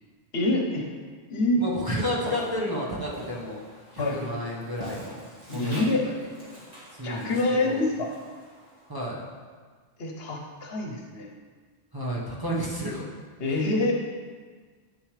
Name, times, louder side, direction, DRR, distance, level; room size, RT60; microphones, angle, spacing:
voice 1, 0.3-0.9 1.3-1.6 4.0-4.2 5.5-6.0 7.0-8.1 10.0-11.3 13.4-13.9, left 2 dB, 70° left, 1 dB, 1.2 m, -26 dB
voice 2, 1.6-3.6 3.9-6.1 6.6-6.7 6.9-7.3 7.6-7.9 8.9-9.3 11.9-13.1 13.4-13.6, equal, 20° right, -5 dB, 1.2 m, -32 dB
Walk footsteps, 2.2-9.3, equal, 40° right, 1.9 m, -44 dB
8.2 x 6.8 x 3.3 m, 1.5 s
omnidirectional pair, 1.1 m